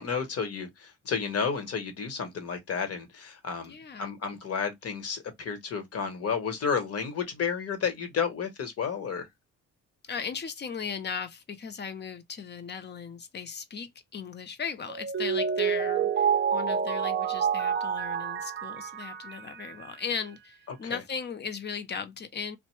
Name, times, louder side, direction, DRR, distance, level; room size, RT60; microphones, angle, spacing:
voice 1, 0.0-9.3 20.7-21.0, left 6 dB, 55° left, 1.1 m, -32 dB
voice 2, 3.7-4.2 10.0-22.6, left 6 dB, 35° left, 0.7 m, -37 dB
Mallet percussion, 14.9-19.8, right 7 dB, 35° right, 0.5 m, -28 dB
2.6 x 2.1 x 3.1 m
cardioid pair, 90°, 30 cm